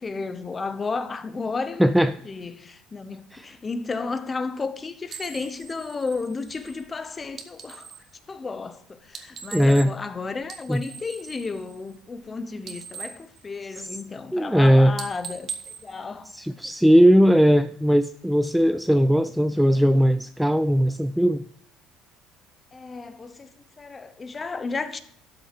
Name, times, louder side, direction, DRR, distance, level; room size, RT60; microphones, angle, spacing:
voice 1, 0.0-1.8 2.2-7.9 8.3-16.6 22.7-23.5 23.8-25.0, left 4 dB, 25° left, 0.9 m, -33 dB
voice 2, 1.8-2.1 3.3-3.5 9.5-9.9 10.7-10.8 14.3-14.9 16.3-21.4, equal, ahead, 0.3 m, -18 dB
sound 1, 5.1-8.1 9.0-10.1 10.4-12.3 12.5-14.1 14.5-14.7 14.9-16.8, right 6 dB, 40° right, 1.4 m, -41 dB
12.5 x 6.5 x 4.9 m
cardioid pair, 125°, 0 cm